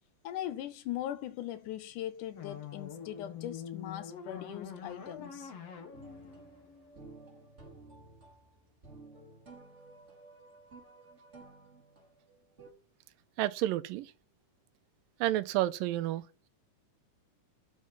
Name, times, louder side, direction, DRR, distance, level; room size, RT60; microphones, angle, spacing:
voice 1, 0.2-5.5, left 12 dB, 80° left, 2.0 m, -40 dB
sound 1, 2.4-7.5, left 7 dB, 55° left, 2.4 m, -45 dB
sound 2, 5.9-12.7, right 3 dB, 20° right, 3.7 m, -54 dB
voice 2, 13.4-14.1 15.2-16.2, right 14 dB, 85° right, 2.4 m, -30 dB
10.0 x 7.5 x 5.8 m
omnidirectional pair, 4.0 m